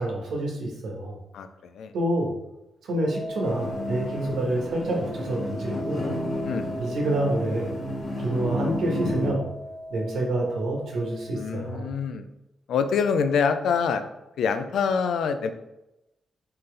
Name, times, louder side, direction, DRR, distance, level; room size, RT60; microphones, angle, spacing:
voice 1, 0.0-1.2 1.9-2.3 2.8-6.1 6.8-7.7 8.2-9.5 9.9-11.9, right 1 dB, 80° right, -1 dB, 1.2 m, -27 dB
voice 2, 1.3-1.9 6.5-6.7 11.3-12.2 12.7-14.0 14.4-15.5, left 6 dB, 90° left, 9 dB, 0.4 m, -25 dB
sound 1, 3.1-11.7, equal, 15° right, 0.7 m, -39 dB
sound 2, 3.4-9.3, left 1 dB, 45° left, 1.1 m, -32 dB
4.1 x 3.8 x 3.3 m, 0.92 s
wide cardioid pair, 150°, 0 cm